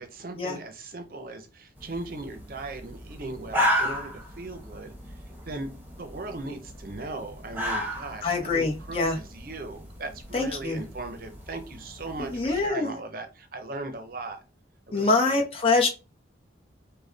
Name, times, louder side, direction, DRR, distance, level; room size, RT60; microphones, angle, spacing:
voice 1, 0.0-4.9 5.5-14.4 14.9-15.4, right 2 dB, 50° right, 0.7 m, -38 dB
sound 1, 1.8-12.7, equal, 10° right, 1.0 m, -34 dB
voice 2, 8.2-9.2 10.3-10.8 12.2-12.9 14.9-15.9, left 3 dB, 30° left, 1.1 m, -25 dB
5.2 x 2.2 x 3.9 m
head